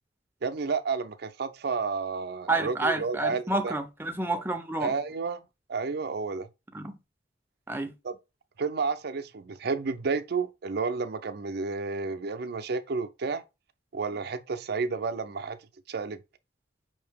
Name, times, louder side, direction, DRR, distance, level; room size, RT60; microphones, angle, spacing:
voice 1, 0.4-3.7 4.8-5.4 5.7-6.5 8.0-8.2 8.6-13.4 13.9-15.6 15.9-16.2, right 4 dB, 60° right, 0.5 m, -31 dB
voice 2, 2.5-4.9 6.7-7.0 7.7-7.9, right 2 dB, 10° right, 0.6 m, -29 dB
5.5 x 2.8 x 3.4 m
head